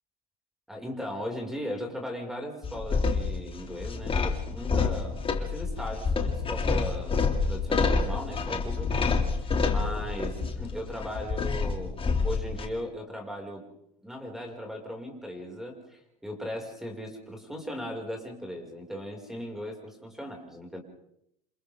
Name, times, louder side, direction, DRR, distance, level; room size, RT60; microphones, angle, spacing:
voice 1, 0.7-9.0 9.4-13.6 14.0-20.8, equal, ahead, 1 dB, 5.9 m, -38 dB
sound 1, 2.6-12.7, left 4 dB, 30° left, 2.7 m, -28 dB
28.5 x 27.5 x 3.7 m, 0.75 s
hypercardioid pair, 80°, 19 cm